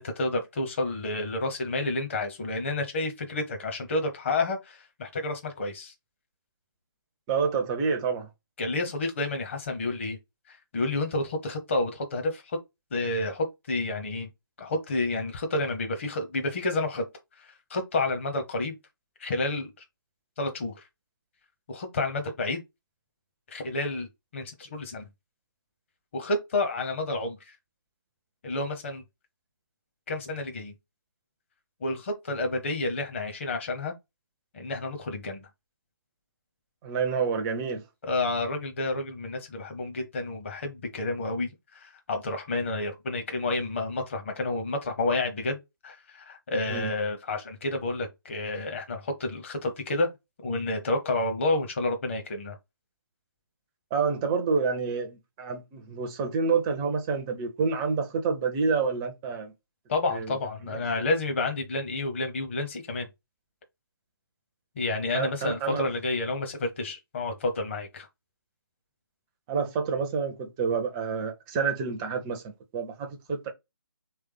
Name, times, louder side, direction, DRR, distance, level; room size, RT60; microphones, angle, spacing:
voice 1, 0.0-5.9 8.6-10.2 10.5-12.6 12.9-14.3 14.6-17.1 17.4-18.8 19.2-19.8 20.4-20.9 21.7-22.6 23.5-25.1 26.1-27.6 28.4-29.0 30.1-30.7 31.8-33.9 34.5-35.5 38.0-50.1 50.4-52.6 59.9-63.1 64.8-68.1, left 2 dB, 35° left, 1.0 m, -30 dB
voice 2, 7.3-8.3 36.8-37.8 46.7-46.9 53.9-59.5 60.1-60.3 60.6-61.0 65.1-65.9 69.5-73.5, right 5 dB, 10° right, 0.4 m, -28 dB
3.3 x 3.2 x 3.3 m
figure-of-eight pair, 145°, 12 cm